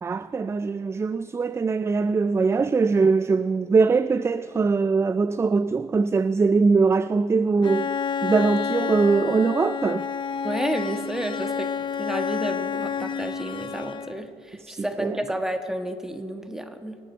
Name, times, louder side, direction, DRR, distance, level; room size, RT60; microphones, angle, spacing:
voice 1, 0.0-7.9 8.2-10.1 14.6-15.2, right 4 dB, 20° right, 0.3 m, -22 dB
Bowed string instrument, 7.6-14.3, left 6 dB, 35° left, 0.5 m, -29 dB
voice 2, 10.4-11.7 12.0-17.0, right 1 dB, 5° right, 1.3 m, -31 dB
24.0 x 9.2 x 4.5 m
supercardioid pair, 85°, 13 cm